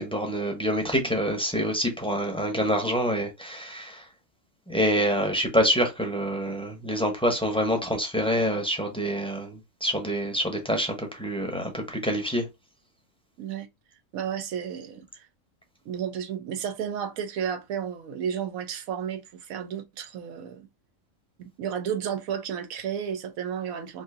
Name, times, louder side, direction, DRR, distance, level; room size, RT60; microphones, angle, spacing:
voice 1, 0.0-4.0 4.7-12.4, equal, 5° left, 0.6 m, -26 dB
voice 2, 14.1-15.3 15.9-20.7 21.4-24.0, right 8 dB, 90° right, 1.1 m, -32 dB
3.8 x 2.6 x 2.5 m
omnidirectional pair, 1.4 m